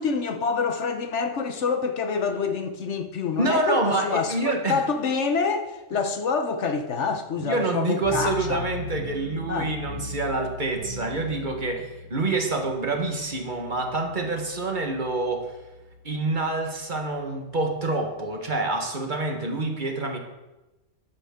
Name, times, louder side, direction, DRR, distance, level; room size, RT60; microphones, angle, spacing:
voice 1, 0.0-8.7 9.5-9.7, left 5 dB, 65° left, 1.2 m, -27 dB
voice 2, 3.4-4.8 7.4-15.6 16.0-20.2, right 2 dB, 40° right, 1.5 m, -27 dB
sound 1, 8.0-19.2, left 1 dB, 60° right, 1.9 m, -40 dB
12.0 x 9.8 x 3.7 m
omnidirectional pair, 1.3 m